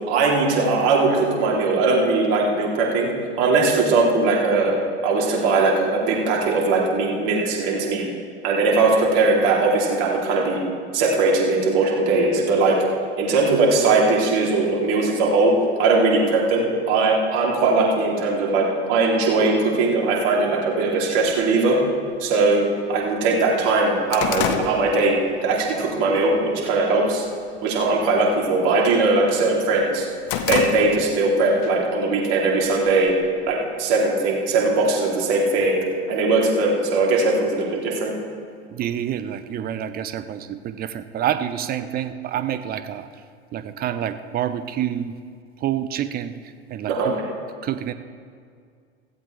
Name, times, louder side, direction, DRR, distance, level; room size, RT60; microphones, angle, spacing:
voice 1, 0.1-4.8 5.0-8.0 8.4-10.6 10.9-12.8 13.2-15.5 15.8-21.8 22.2-27.2 27.6-30.0 30.5-33.1 33.5-38.1 46.9-47.1, right 3 dB, 50° right, -2 dB, 3.3 m, -20 dB
sound 1, 21.3-21.4 22.3-22.4 22.8-22.9 23.2-25.7 26.0-26.4 26.8-27.3 27.6-27.9 28.2-29.4 29.8-31.3 31.6-31.8 32.6-33.5, left 8 dB, 45° left, 1.1 m, -28 dB
voice 2, 38.7-43.1 43.5-45.1 45.6-46.3 46.7-47.2 47.6-47.9, right 10 dB, 25° right, 12 dB, 0.7 m, -27 dB
16.0 x 15.5 x 3.4 m, 2.2 s
figure-of-eight pair, 80°, 33 cm